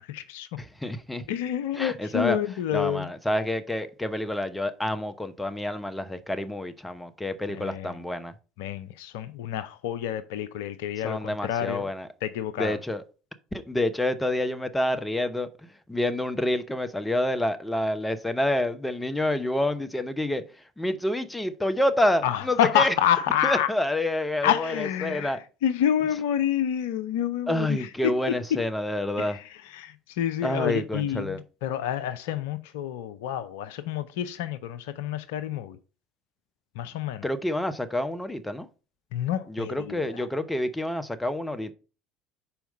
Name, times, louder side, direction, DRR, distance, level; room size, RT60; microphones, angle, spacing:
voice 1, 0.0-0.5 1.3-3.1 7.5-7.9 8.6-11.9 12.2-12.8 22.2-23.7 24.4-28.1 29.2-29.4 29.7-35.8 36.8-37.2 39.1-40.3, left 10 dB, 70° left, 0.5 m, -28 dB
voice 2, 0.6-1.2 1.7-2.4 2.7-8.3 11.0-12.1 12.6-13.0 13.5-15.5 15.9-20.4 20.8-22.9 23.4-25.4 27.5-29.4 30.4-31.4 37.2-38.7 39.5-41.7, left 1 dB, 10° left, 0.8 m, -28 dB
5.7 x 4.6 x 5.3 m
figure-of-eight pair, 65°, 0 cm